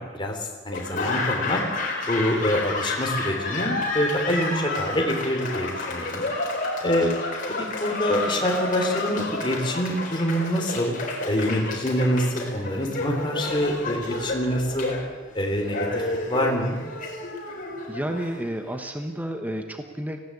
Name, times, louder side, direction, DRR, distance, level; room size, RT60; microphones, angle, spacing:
voice 1, 0.0-1.6 2.1-6.2 6.8-7.1 7.5-10.9 11.3-14.9 15.3-16.0 16.3-16.8, equal, 25° left, 1 dB, 3.5 m, -25 dB
Laughter / Applause, 0.7-18.8, left 2 dB, 40° left, 4.3 m, -30 dB
voice 2, 17.9-20.2, right 1 dB, 10° right, 5 dB, 1.1 m, -31 dB
19.0 x 17.0 x 8.6 m, 1.3 s
head